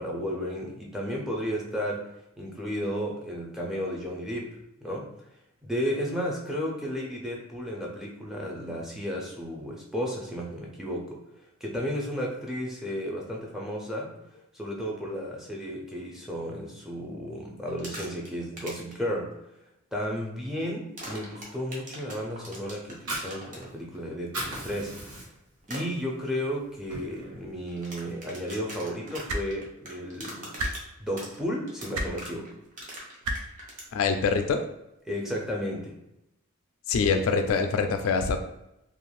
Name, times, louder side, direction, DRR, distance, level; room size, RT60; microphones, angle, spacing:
voice 1, 0.0-2.1 2.4-4.5 4.8-5.1 5.6-11.2 11.6-14.1 14.5-19.3 19.9-25.0 25.7-30.5 31.0-32.5 35.1-36.0, equal, ahead, -3 dB, 0.5 m, -33 dB
sound 1, 17.7-18.3 18.6-18.9 21.0-23.6 25.6-25.8 27.7-33.9, right 1 dB, 35° right, 0.7 m, -41 dB
Fire, 22.8-24.0 24.2-25.6 26.0-26.1 26.5-27.5, right 1 dB, 90° right, 1.0 m, -36 dB
sound 2, 29.3-29.4 30.6-30.7 31.9-32.1 33.2-33.4 34.6-34.7, right 1 dB, 70° right, 0.4 m, -29 dB
voice 2, 33.9-34.6 36.9-38.4, left 5 dB, 70° left, 6 dB, 0.3 m, -24 dB
2.5 x 2.3 x 3.1 m, 0.88 s
head